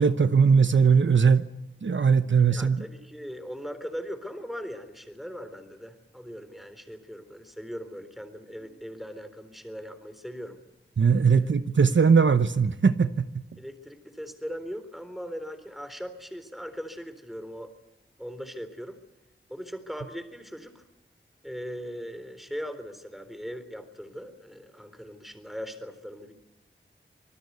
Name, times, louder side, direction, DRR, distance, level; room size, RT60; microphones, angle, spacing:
voice 1, 0.0-1.4 1.8-2.8 11.0-13.3, right 5 dB, 70° right, 0.9 m, -20 dB
voice 2, 2.5-10.6 11.3-11.5 13.6-17.7 18.2-19.0 19.5-20.8 21.4-26.3, equal, ahead, 3.9 m, -39 dB
26.0 x 19.5 x 8.3 m
wide cardioid pair, 55°, 20 cm